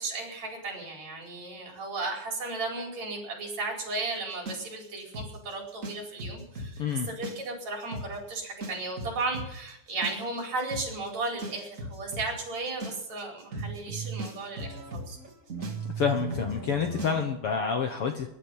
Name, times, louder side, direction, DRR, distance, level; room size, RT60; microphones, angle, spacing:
voice 1, 0.0-15.2, right 3 dB, 55° right, 0 dB, 5.8 m, -35 dB
sound 1, 4.5-6.7 7.1-7.6 7.9-8.1 8.6-17.2, right 2 dB, 25° right, 2.2 m, -37 dB
voice 2, 6.8-7.1 16.0-18.3, left 6 dB, 60° left, 5 dB, 1.7 m, -28 dB
21.0 x 11.5 x 5.6 m, 0.79 s
omnidirectional pair, 3.7 m